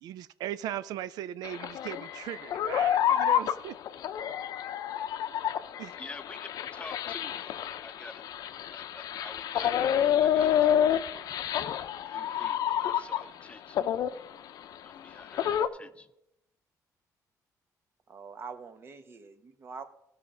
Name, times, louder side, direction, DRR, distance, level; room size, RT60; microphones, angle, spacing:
voice 1, 0.0-3.7 5.8-5.9, right 12 dB, 85° right, 16 dB, 0.4 m, -38 dB
sound 1, 1.4-13.4 13.7-15.7, left 10 dB, 70° left, 0.6 m, -29 dB
voice 2, 6.0-8.2 8.7-9.8 10.2-11.4 12.1-13.8 14.8-16.1, left 3 dB, 20° left, 12 dB, 0.5 m, -48 dB
voice 3, 18.1-19.8, right 5 dB, 35° right, 10 dB, 0.9 m, -44 dB
16.0 x 5.7 x 5.1 m, 0.82 s
cardioid pair, 140°, 7 cm